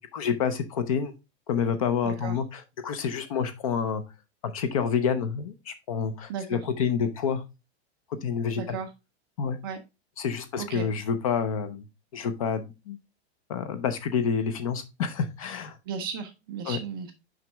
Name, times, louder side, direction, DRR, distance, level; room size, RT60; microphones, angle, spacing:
voice 1, 0.1-1.1 1.5-4.0 4.4-7.4 8.2-8.8 9.4-9.6 10.2-11.9 12.1-13.0 13.5-15.8 16.6-16.8, left 6 dB, 30° left, 11 dB, 0.6 m, -28 dB
voice 2, 2.0-2.4 6.3-6.6 8.6-8.9 9.6-9.8 10.6-10.9 15.9-17.1, right 6 dB, 20° right, 5 dB, 0.5 m, -35 dB
6.0 x 5.2 x 3.3 m, 0.25 s
supercardioid pair, 180°, 34 cm